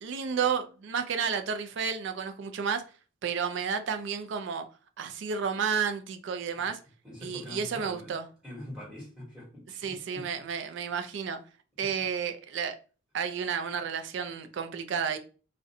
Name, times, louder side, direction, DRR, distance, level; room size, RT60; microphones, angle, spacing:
voice 1, 0.0-2.8 3.2-4.6 5.0-6.8 7.2-8.3 9.8-11.4 11.8-12.8 13.1-15.2, right 6 dB, 60° right, 0.3 m, -31 dB
voice 2, 7.0-8.1 8.4-10.3 11.8-11.9, left 1 dB, 5° right, 1.1 m, -44 dB
2.5 x 2.1 x 2.6 m
head